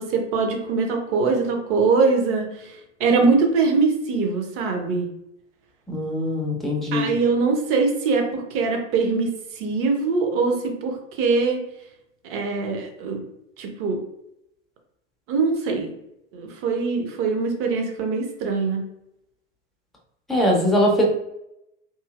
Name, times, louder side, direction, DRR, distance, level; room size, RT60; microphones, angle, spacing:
voice 1, 0.0-5.1 6.9-9.3 9.5-11.6 12.2-13.2 13.6-14.0 15.3-15.9 16.3-18.9, right 4 dB, 35° right, 3 dB, 0.7 m, -22 dB
voice 2, 5.9-7.1 20.3-21.1, left 1 dB, ahead, -2 dB, 0.5 m, -21 dB
3.1 x 2.7 x 2.3 m, 0.82 s
figure-of-eight pair, 90°, 38 cm